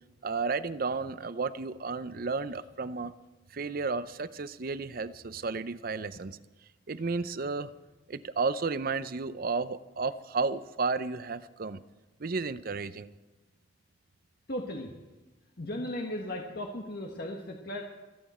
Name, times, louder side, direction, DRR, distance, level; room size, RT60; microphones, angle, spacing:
voice 1, 0.2-3.1 3.5-6.4 6.9-7.7 8.1-11.8 12.2-13.1, right 4 dB, 50° right, 14 dB, 0.6 m, -32 dB
voice 2, 14.5-14.9 15.6-17.8, left 1 dB, 55° left, 0 dB, 1.5 m, -36 dB
28.5 x 9.5 x 4.4 m, 1.2 s
head